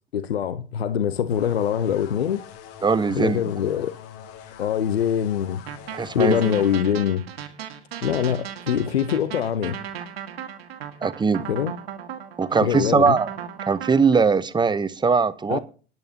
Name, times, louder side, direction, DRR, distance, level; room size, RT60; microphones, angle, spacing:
voice 1, 0.1-2.4 3.1-3.9 4.6-5.6 6.1-7.2 8.0-9.8 11.5-11.7 12.6-13.2 15.5-15.6, left 9 dB, 85° left, 0.7 m, -23 dB
sound 1, 1.3-6.8, left 9 dB, 50° left, 2.2 m, -43 dB
voice 2, 2.8-3.4 5.9-6.6 11.0-11.4 12.4-13.3 13.7-15.6, right 5 dB, 15° right, 0.9 m, -20 dB
sound 2, 5.7-14.2, right 9 dB, 80° right, 2.0 m, -36 dB
23.5 x 10.5 x 2.8 m
hypercardioid pair, 85°, 30 cm